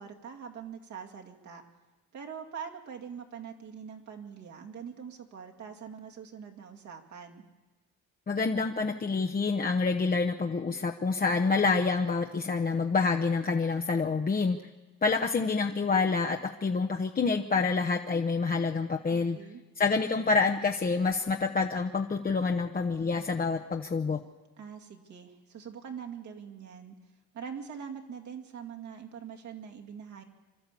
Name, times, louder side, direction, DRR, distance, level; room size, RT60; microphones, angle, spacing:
voice 1, 0.0-1.6 2.1-7.5 19.1-19.6 24.6-27.0 27.3-30.2, right 7 dB, 70° right, 3 dB, 2.5 m, -43 dB
voice 2, 8.3-14.6 15.0-19.4 19.8-24.2, left 4 dB, 30° left, 4 dB, 1.0 m, -27 dB
26.0 x 12.5 x 8.4 m, 1.2 s
cardioid pair, 90°, 30 cm